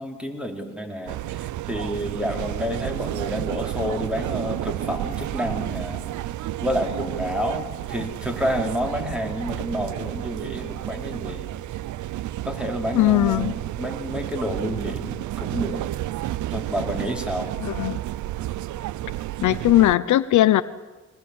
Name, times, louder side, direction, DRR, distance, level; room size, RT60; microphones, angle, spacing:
voice 1, 0.0-6.0 6.6-11.5 12.4-15.9 16.5-17.5, equal, 5° right, 2 dB, 4.6 m, -29 dB
sound 1, 1.1-20.0, right 14 dB, 75° right, 0.7 m, -31 dB
voice 2, 12.9-13.5 17.6-18.0 19.4-20.6, left 14 dB, 75° left, 14 dB, 0.9 m, -19 dB
22.5 x 19.5 x 8.8 m, 1.2 s
cardioid pair, 90°, 30 cm